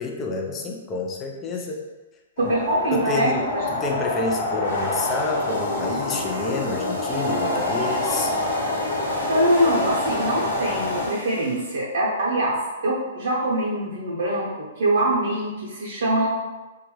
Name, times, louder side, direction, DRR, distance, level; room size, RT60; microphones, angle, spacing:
voice 1, 0.0-1.8 2.4-2.5 2.9-8.3, left 3 dB, 25° left, 1 dB, 0.5 m, -29 dB
sound 1, 2.4-11.1, left 1 dB, 50° left, 0.8 m, -27 dB
voice 2, 2.4-3.4 9.3-12.6 12.8-16.3, right 1 dB, 65° right, -7 dB, 0.7 m, -23 dB
sound 2, 4.6-11.7, left 1 dB, 90° left, 1.1 m, -33 dB
sound 3, 7.1-10.7, right 1 dB, 25° right, 0.6 m, -37 dB
3.0 x 2.3 x 3.1 m, 1.2 s
figure-of-eight pair, 115°, 0 cm